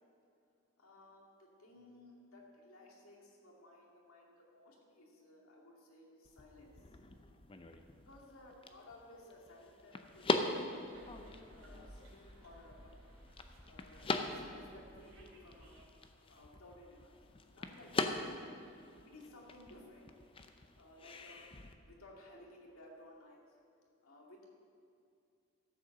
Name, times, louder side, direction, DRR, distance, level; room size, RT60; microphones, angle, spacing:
voice 1, 0.8-6.7 8.1-12.9 13.6-15.9 16.3-18.4 19.0-20.1 20.8-21.4 21.8-23.5 24.0-24.5, left 1 dB, 80° left, -1 dB, 2.4 m, -58 dB
sound 1, 6.2-21.7, left 2 dB, 25° left, 0.6 m, -42 dB
sound 2, 10.8-15.8, equal, 60° right, 2.6 m, -57 dB
13.0 x 7.8 x 6.6 m, 2.5 s
head